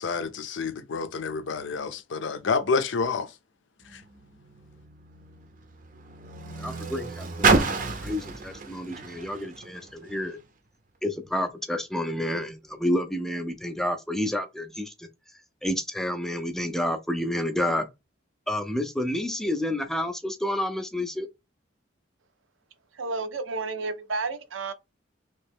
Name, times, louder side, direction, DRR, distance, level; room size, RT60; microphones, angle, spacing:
voice 1, 0.0-3.4 3.8-4.0, left 4 dB, 70° left, 0.5 m, -29 dB
Car, 3.8-10.4 11.2-11.3, right 3 dB, 45° right, 0.6 m, -30 dB
voice 2, 6.6-10.4 11.0-15.1 15.6-17.9 18.5-21.3, left 1 dB, ahead, 0.4 m, -29 dB
voice 3, 22.9-24.7, right 3 dB, 85° right, 0.6 m, -31 dB
3.0 x 2.8 x 3.5 m
head